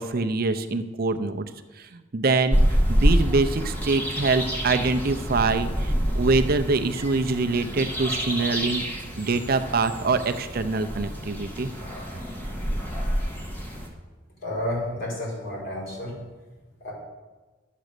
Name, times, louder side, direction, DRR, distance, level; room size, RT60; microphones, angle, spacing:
voice 1, 0.0-1.4 1.8-11.7, right 3 dB, 50° right, 8 dB, 0.6 m, -25 dB
sound 1, 2.5-13.9, equal, 10° left, 1.9 m, -27 dB
voice 2, 14.4-16.1 16.8-16.9, left 1 dB, 50° left, -5 dB, 4.9 m, -30 dB
12.0 x 7.5 x 6.7 m, 1.2 s
head